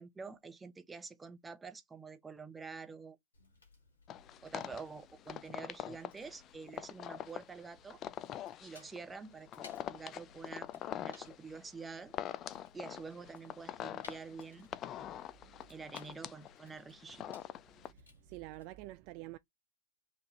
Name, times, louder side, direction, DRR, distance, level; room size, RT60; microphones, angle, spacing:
voice 1, 0.0-3.2 4.4-8.0 8.6-12.1 12.7-14.7 15.0-15.1 15.7-17.4, right 4 dB, 10° right, 0.6 m, -48 dB
Fire, 3.3-18.7, left 3 dB, 75° left, 2.0 m, -62 dB
sound 1, 4.1-17.9, left 11 dB, 30° left, 0.4 m, -44 dB
voice 2, 17.8-19.4, right 17 dB, 45° right, 0.3 m, -48 dB
4.5 x 2.5 x 3.0 m
figure-of-eight pair, 105°, 0 cm